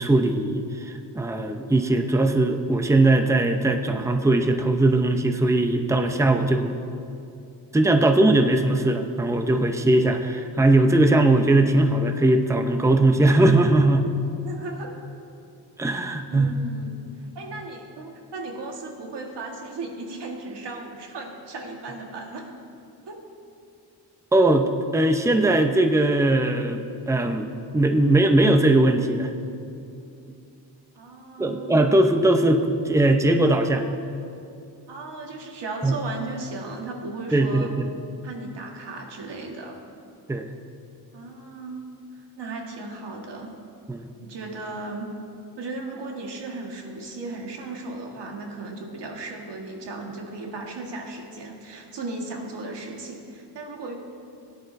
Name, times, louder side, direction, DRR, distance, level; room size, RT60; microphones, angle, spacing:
voice 1, 0.0-6.7 7.7-14.1 15.8-16.5 24.3-24.7 24.9-29.3 29.6-29.7 31.4-33.9 35.8-36.0 37.3-37.9 40.3-40.5 43.9-44.1, right 2 dB, 5° right, 6 dB, 0.7 m, -20 dB
voice 2, 14.2-15.0 16.3-22.5 23.1-23.2 30.9-31.8 34.9-37.7 38.2-39.8 41.1-41.8 42.3-43.5 44.2-45.2 45.6-53.9, right 3 dB, 75° right, 1 dB, 1.7 m, -36 dB
17.0 x 10.5 x 2.7 m, 2.6 s
cardioid pair, 70°, 42 cm